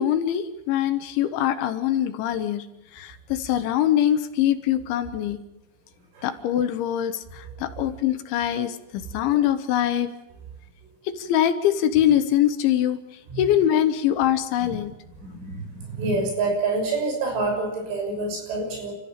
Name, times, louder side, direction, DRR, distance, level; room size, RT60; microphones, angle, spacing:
voice 1, 0.0-2.7 2.9-5.4 6.2-10.1 11.1-13.0 13.4-14.9, left 11 dB, 75° left, 10 dB, 3.5 m, -23 dB
voice 2, 15.2-18.9, right 3 dB, 80° right, 2 dB, 8.8 m, -27 dB
29.0 x 14.0 x 8.9 m, 1.0 s
omnidirectional pair, 5.6 m